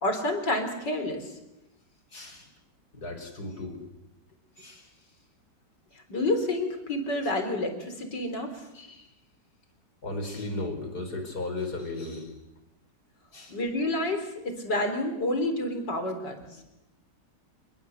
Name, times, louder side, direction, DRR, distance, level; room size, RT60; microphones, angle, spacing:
voice 1, 0.0-1.4 6.1-8.7 13.5-16.4, left 1 dB, 85° left, 7 dB, 4.6 m, -29 dB
voice 2, 2.1-2.5 2.9-3.8 4.6-4.9 8.7-9.1 10.0-12.3 13.3-13.6 16.5-16.6, left 2 dB, 65° left, 6 dB, 5.3 m, -36 dB
28.5 x 21.5 x 8.1 m, 0.90 s
omnidirectional pair, 1.8 m